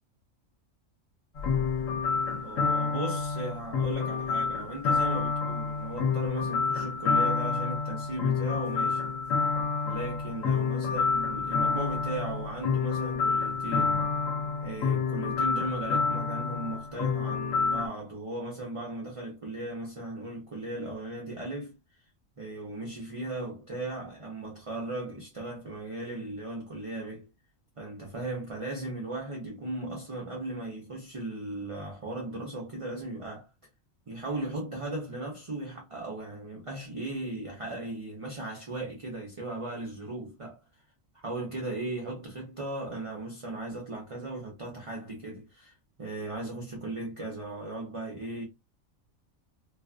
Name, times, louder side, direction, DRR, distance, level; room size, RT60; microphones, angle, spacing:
sound 1, 1.4-17.9, left 5 dB, 80° left, 1.0 m, -28 dB
voice 1, 2.4-9.0 9.8-14.0 14.6-21.8 22.4-27.3 27.8-33.5 34.1-40.6 41.2-45.7 46.0-48.4, right 2 dB, 40° right, 0.4 m, -37 dB
2.4 x 2.3 x 2.4 m
omnidirectional pair, 1.4 m